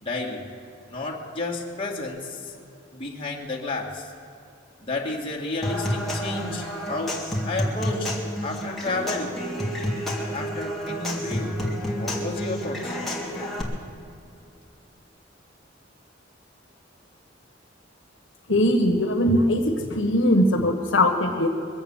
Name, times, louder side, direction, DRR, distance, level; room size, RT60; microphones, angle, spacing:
voice 1, 0.0-0.5 0.9-2.5 2.9-4.1 4.8-9.4 10.3-11.6 12.0-13.0, left 2 dB, 30° left, -2 dB, 2.0 m, -31 dB
Human voice / Acoustic guitar / Percussion, 5.6-13.6, equal, ahead, 2.0 m, -29 dB
voice 2, 18.5-21.5, left 1 dB, 75° left, 3 dB, 1.3 m, -21 dB
22.5 x 8.1 x 7.1 m, 2.5 s
head